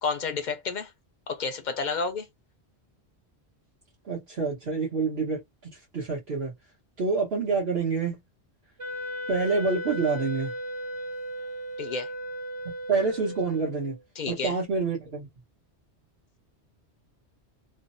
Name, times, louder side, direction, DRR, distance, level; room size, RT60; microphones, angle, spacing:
voice 1, 0.0-0.9 1.3-2.3 11.8-12.1 14.2-14.6, left 5 dB, 50° left, 0.6 m, -30 dB
voice 2, 4.0-6.5 7.0-8.2 9.3-10.5 12.9-14.0 14.3-15.3, right 4 dB, 65° right, 1.3 m, -27 dB
Wind instrument woodwind instrument, 8.8-14.0, equal, 35° right, 1.0 m, -36 dB
3.2 x 2.1 x 2.5 m
omnidirectional pair, 1.1 m